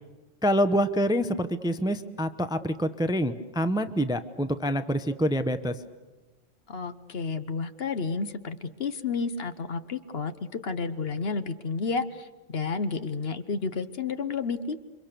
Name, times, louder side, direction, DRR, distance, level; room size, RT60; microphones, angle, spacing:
voice 1, 0.4-5.7, equal, 5° right, 10 dB, 0.7 m, -26 dB
voice 2, 6.7-10.3 10.6-14.8, left 4 dB, 55° left, 10 dB, 1.2 m, -31 dB
28.5 x 24.5 x 6.8 m, 1.2 s
omnidirectional pair, 1.2 m